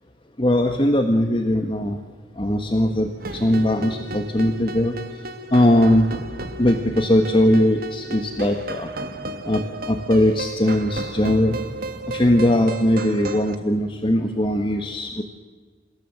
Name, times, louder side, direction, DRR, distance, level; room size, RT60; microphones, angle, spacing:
voice 1, 0.4-2.0 2.4-4.9 5.5-6.1 6.6-8.9 9.5-9.6 9.9-11.6 12.1-15.2, left 1 dB, 25° left, 4 dB, 1.5 m, -20 dB
sound 1, 3.2-13.6, right 2 dB, 55° right, 1.6 m, -34 dB
28.0 x 16.0 x 7.8 m, 1.4 s
head